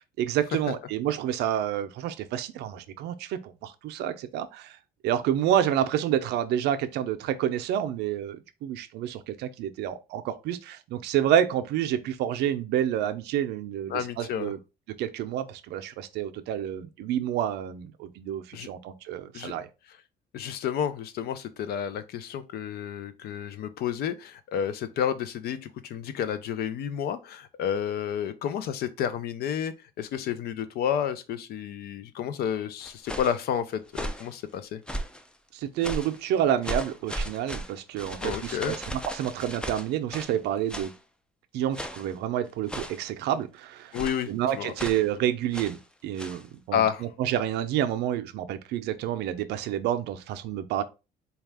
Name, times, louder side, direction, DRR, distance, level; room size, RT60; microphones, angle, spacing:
voice 1, 0.2-4.8 5.0-14.6 15.0-19.7 35.5-40.9 41.5-44.0 44.3-45.8 46.0-50.8, right 10 dB, 80° right, 0.5 m, -29 dB
voice 2, 13.9-14.5 18.5-18.7 19.3-19.5 20.3-34.8 38.2-38.8 43.9-44.3 44.6-44.7 46.7-47.1, left 9 dB, 65° left, 0.5 m, -30 dB
sound 1, 32.8-33.4 33.9-34.3 34.9-35.3 35.8-36.2 36.6-40.4 40.7-41.0 41.7-42.1 42.7-43.1 43.9-44.3 44.8-45.1 45.5-45.8 46.2-46.4, equal, 5° left, 0.4 m, -36 dB
4.1 x 2.3 x 3.4 m
cardioid pair, 110°, 17 cm